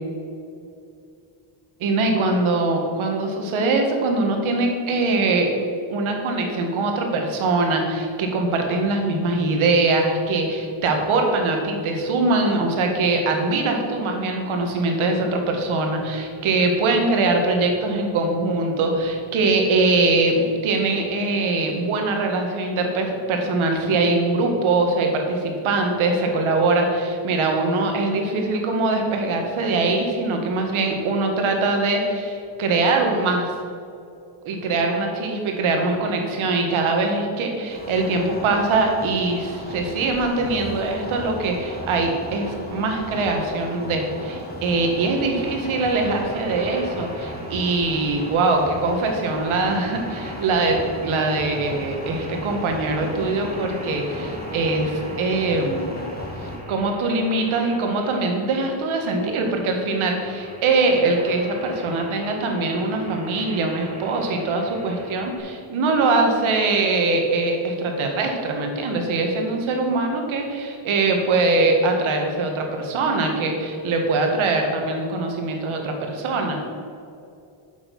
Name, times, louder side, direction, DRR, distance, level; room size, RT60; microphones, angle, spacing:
voice 1, 1.8-5.5 5.9-33.5 34.4-56.1 56.7-76.6, right 3 dB, 75° right, 3 dB, 1.9 m, -22 dB
sound 1, 37.7-56.6, left 1 dB, 20° left, 1.9 m, -36 dB
sound 2, 45.4-65.4, right 1 dB, 15° right, 1.8 m, -41 dB
8.7 x 7.2 x 5.5 m, 2.5 s
cardioid pair, 100°, 49 cm